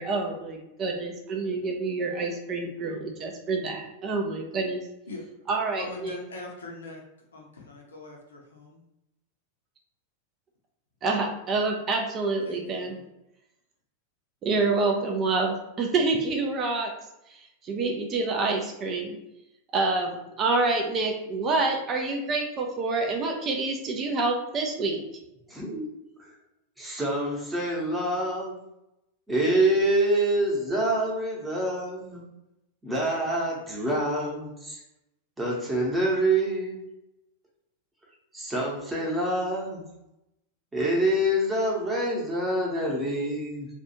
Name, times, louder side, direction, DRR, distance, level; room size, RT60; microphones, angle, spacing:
voice 1, 0.0-4.8 5.5-6.2 11.0-13.0 14.4-16.9 17.3-19.2 19.7-25.0, right 3 dB, 30° right, 1 dB, 0.4 m, -27 dB
voice 2, 5.8-7.0 7.3-8.8 12.4-13.0 15.1-15.3, left 2 dB, 70° left, -1 dB, 0.6 m, -41 dB
voice 3, 25.5-25.9 26.2-26.3 26.8-28.6 29.3-32.2 32.8-34.8 35.4-36.8 38.3-39.8 40.7-43.7, right 1 dB, 10° right, -4 dB, 0.8 m, -26 dB
2.4 x 2.3 x 2.8 m, 0.89 s
figure-of-eight pair, 90°, 0 cm